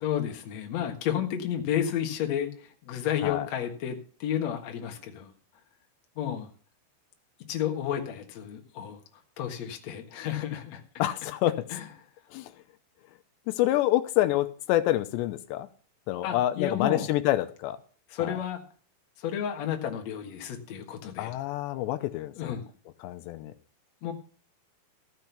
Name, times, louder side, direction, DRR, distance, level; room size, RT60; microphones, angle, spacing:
voice 1, 0.0-5.3 6.2-6.5 7.5-9.0 9.4-10.8 11.7-11.9 16.2-17.0 18.1-18.6 19.2-21.3 22.4-22.7 24.0-24.1, left 9 dB, 55° left, 3 dB, 2.0 m, -31 dB
voice 2, 11.0-11.6 12.3-12.5 13.5-15.7 16.1-17.8 18.2-18.4 21.2-22.6 23.0-23.5, left 14 dB, 85° left, 10 dB, 3.0 m, -27 dB
14.5 x 6.1 x 6.9 m, 0.42 s
omnidirectional pair, 5.1 m